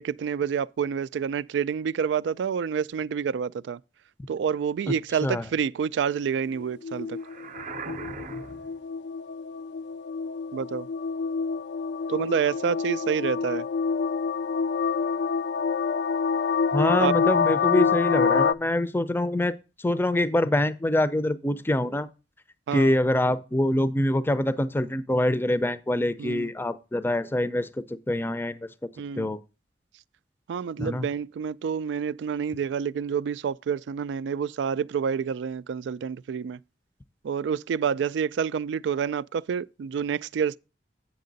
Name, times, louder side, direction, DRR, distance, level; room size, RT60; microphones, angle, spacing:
voice 1, 0.0-3.8 4.3-7.2 10.5-10.9 12.1-13.7 17.0-17.1 22.7-22.9 26.2-26.5 29.0-29.3 30.5-36.6 37.2-40.6, right 7 dB, 85° right, 0.3 m, -28 dB
sound 1, 6.6-18.5, left 5 dB, 70° left, 0.3 m, -27 dB
sound 2, 7.2-8.8, right 4 dB, 45° right, 0.6 m, -39 dB
voice 2, 16.7-22.1 22.7-27.7 28.1-28.7 29.2-29.4 30.8-31.1, left 1 dB, 10° left, 0.5 m, -25 dB
8.4 x 6.5 x 3.9 m
head